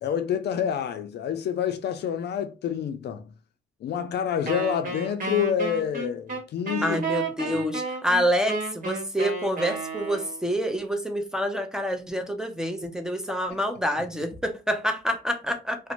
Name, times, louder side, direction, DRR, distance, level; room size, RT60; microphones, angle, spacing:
voice 1, 0.0-3.2 3.8-7.0 7.4-7.6 13.5-13.6, left 8 dB, 60° left, 0.4 m, -28 dB
Wind instrument woodwind instrument, 4.5-10.5, right 3 dB, 45° right, 1.2 m, -32 dB
voice 2, 6.8-15.8, equal, 5° right, 0.5 m, -27 dB
2.5 x 2.1 x 2.8 m
cardioid pair, 90°, 20 cm